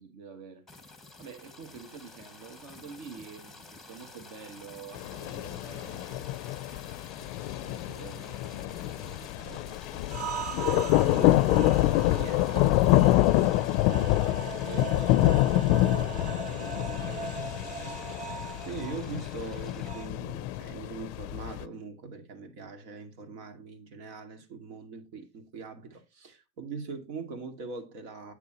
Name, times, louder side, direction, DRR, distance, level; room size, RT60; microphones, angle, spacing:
voice 1, 0.0-6.3 7.5-10.3 13.5-18.0, right 6 dB, 50° right, 1.6 m, -48 dB
sound 1, 0.7-19.9, left 3 dB, ahead, 1.0 m, -49 dB
sound 2, 4.9-21.6, left 16 dB, 50° left, 0.5 m, -27 dB
sound 3, 10.1-20.1, right 7 dB, 20° right, 0.4 m, -40 dB
voice 2, 10.7-13.7 18.7-28.3, right 4 dB, 70° right, 2.3 m, -41 dB
8.4 x 6.8 x 2.9 m
supercardioid pair, 140°, 40 cm